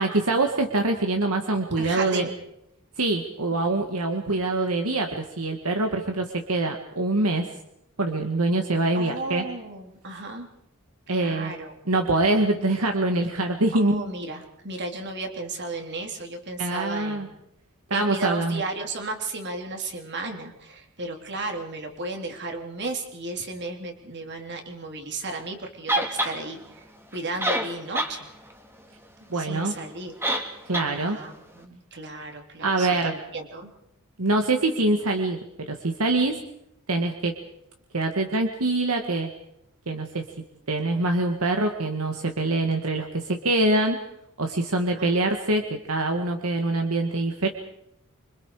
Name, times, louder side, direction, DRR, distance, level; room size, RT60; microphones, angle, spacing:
voice 1, 0.0-2.3 3.0-7.5 8.0-9.4 11.1-11.5 11.9-14.0 16.6-17.3 17.9-18.6 29.3-29.7 30.7-31.2 32.6-33.1 34.2-35.4 35.7-36.4 36.9-37.3 37.9-39.3 39.9-40.2 40.7-44.0 44.4-47.5, right 2 dB, 75° right, 4 dB, 1.9 m, -24 dB
voice 2, 1.8-2.4 4.3-4.5 8.9-10.5 11.1-11.7 13.7-17.3 17.9-28.3 29.3-30.1 30.9-33.7 45.0-45.2, right 3 dB, 50° right, 3 dB, 3.6 m, -34 dB
sound 1, 25.9-26.3 27.1-27.2 27.4-28.1 28.5-28.6 30.2-30.5 30.7-30.9, right 1 dB, 10° right, 2.5 m, -25 dB
26.5 x 25.0 x 5.0 m, 0.81 s
head